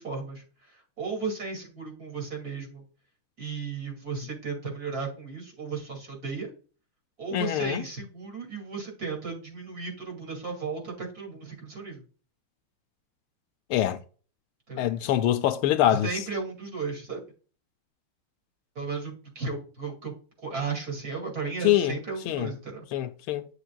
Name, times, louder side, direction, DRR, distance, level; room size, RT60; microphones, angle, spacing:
voice 1, 0.0-2.8 3.4-6.5 7.2-12.0 14.7-14.9 15.9-17.2 18.7-20.1 20.4-22.8, right 4 dB, 40° right, 3.0 m, -35 dB
voice 2, 7.3-7.8 13.7-14.0 14.8-16.1 21.6-22.0 22.3-22.5 22.9-23.5, left 12 dB, 80° left, 1.4 m, -24 dB
9.5 x 6.8 x 2.3 m
omnidirectional pair, 2.4 m